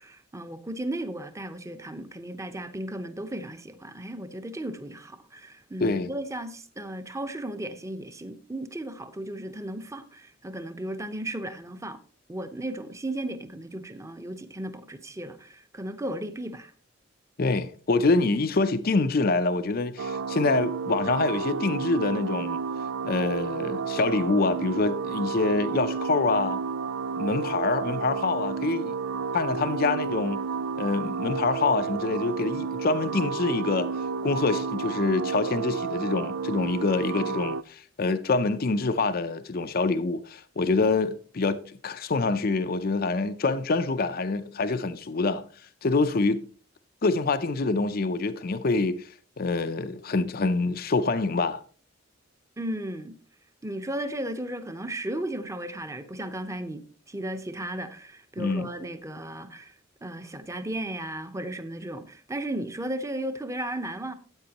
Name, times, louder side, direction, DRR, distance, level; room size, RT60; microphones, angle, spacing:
voice 1, 0.0-12.0 12.3-16.7 52.6-53.2 53.6-64.1, right 1 dB, 15° right, 0.8 m, -35 dB
voice 2, 5.8-6.1 17.4-22.6 23.0-26.6 27.2-29.0 29.3-30.4 30.8-41.6 41.8-45.4 45.8-46.4 47.0-51.6 58.4-58.7, left 3 dB, 50° left, 0.6 m, -26 dB
sound 1, 20.0-37.6, right 5 dB, 85° right, 0.4 m, -31 dB
13.5 x 8.7 x 2.9 m
head